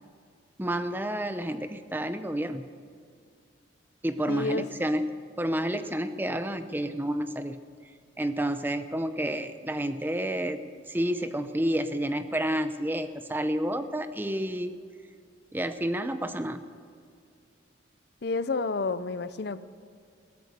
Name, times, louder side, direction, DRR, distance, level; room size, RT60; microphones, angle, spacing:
voice 1, 0.6-2.7 4.0-5.0 5.4-7.6 8.2-10.6 10.9-14.7 15.5-16.6, right 1 dB, 10° right, 10 dB, 0.6 m, -30 dB
voice 2, 4.3-4.7 18.2-19.6, left 3 dB, 55° left, 14 dB, 0.5 m, -30 dB
16.5 x 13.0 x 6.6 m, 2.2 s
head